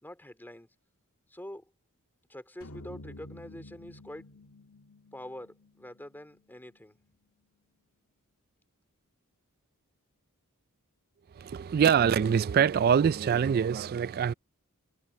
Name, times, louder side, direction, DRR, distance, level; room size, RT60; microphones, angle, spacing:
voice 1, 0.0-0.7 1.3-1.6 2.3-4.2 5.1-7.0, left 1 dB, 10° left, 3.0 m, -45 dB
sound 1, 2.6-6.9, left 1 dB, 90° left, 2.5 m, -50 dB
voice 2, 11.4-14.3, right 7 dB, 45° right, 0.3 m, -24 dB
head